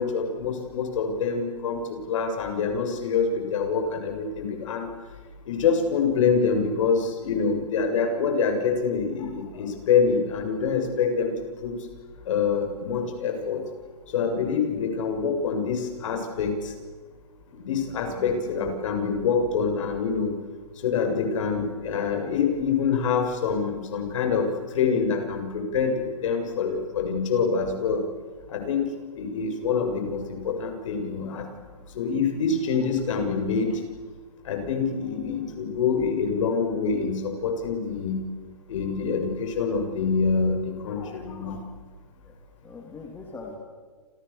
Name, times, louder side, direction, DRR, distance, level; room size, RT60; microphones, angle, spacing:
voice 1, 0.0-4.9 5.5-11.3 11.6-11.8 12.3-13.6 14.1-16.7 17.5-20.3 20.8-28.0 28.5-28.9 29.2-31.5 31.9-33.8 34.4-38.2 38.7-41.6, left 5 dB, 55° left, 5 dB, 7.2 m, -26 dB
voice 2, 18.1-18.7 42.2-42.3 42.6-43.6, left 3 dB, 10° left, 1 dB, 3.2 m, -41 dB
29.0 x 27.5 x 7.2 m, 1.5 s
hypercardioid pair, 155°, 20 cm